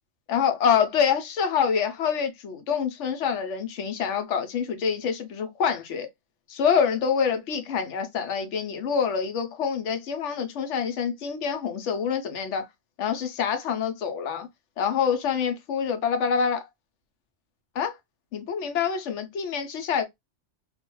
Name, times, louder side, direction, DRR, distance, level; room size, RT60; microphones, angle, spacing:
voice 1, 0.3-6.1 6.5-12.7 13.0-14.5 14.8-16.7 17.8-17.9 18.3-20.0, left 7 dB, 75° left, 0.9 m, -26 dB
2.3 x 2.2 x 2.9 m
omnidirectional pair, 1.3 m